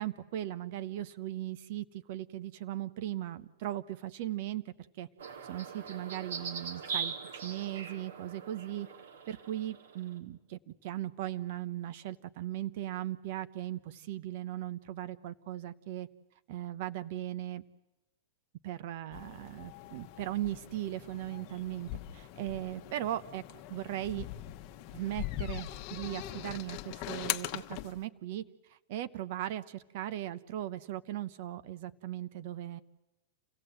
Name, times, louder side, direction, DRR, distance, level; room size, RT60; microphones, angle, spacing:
voice 1, 0.0-5.1 5.4-8.9 9.3-16.1 16.5-17.6 18.6-23.4 23.7-24.3 24.9-32.8, right 13 dB, 60° right, 13 dB, 0.9 m, -38 dB
sound 1, 5.2-10.1, right 6 dB, 80° right, 2.6 m, -41 dB
Open Door-Wind-Close Door, 19.1-28.0, left 14 dB, 45° left, 1.1 m, -41 dB
27.5 x 16.0 x 7.8 m, 1.1 s
hypercardioid pair, 115°, 0 cm